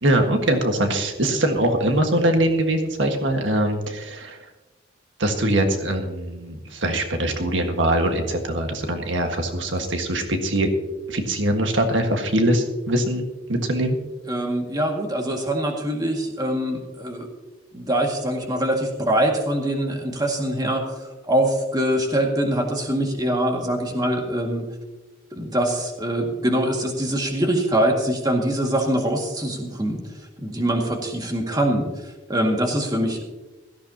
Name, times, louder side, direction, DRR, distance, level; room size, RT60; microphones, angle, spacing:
voice 1, 0.0-4.4 5.2-10.7 11.1-13.2 13.5-14.0, right 1 dB, 85° right, 4 dB, 1.6 m, -22 dB
voice 2, 14.3-17.3 17.7-24.6 25.3-30.0 30.4-33.3, right 1 dB, 20° right, 1 dB, 2.0 m, -23 dB
17.0 x 14.0 x 2.9 m, 1.1 s
head